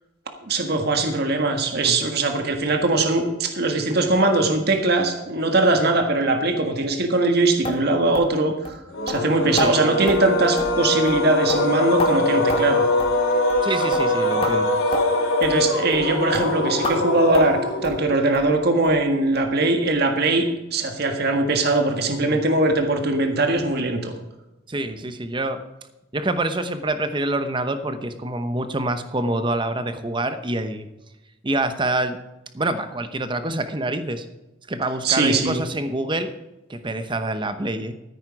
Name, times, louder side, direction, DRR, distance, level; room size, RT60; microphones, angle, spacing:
voice 1, 0.4-8.8 9.1-12.9 15.4-24.1 35.0-35.6, right 2 dB, 50° right, 4 dB, 1.6 m, -21 dB
sound 1, 7.6-7.8 8.1-8.3 8.6-8.8 9.1-9.2 9.6-9.7 10.1-10.2 10.6-10.8 11.1-11.2 11.5-12.1 12.5-12.7 13.0-13.1 13.5-13.6 13.9-14.1 14.4-14.5 14.9-15.0 15.4-15.6 15.9-16.1 16.3-16.5 16.8-17.0 17.3-17.5 17.8-18.0 18.3-18.5 18.8-19.0 19.3-19.4 19.8-19.9, left 1 dB, 25° left, 1.7 m, -29 dB
sound 2, 8.9-18.3, left 1 dB, 75° left, 2.4 m, -23 dB
voice 2, 13.6-14.8 22.2-22.4 24.7-25.6 26.1-30.9 31.4-32.2 32.5-34.2 34.7-36.3 36.7-37.9, right 2 dB, 25° right, 9 dB, 0.9 m, -26 dB
14.0 x 9.4 x 4.8 m, 1.0 s
head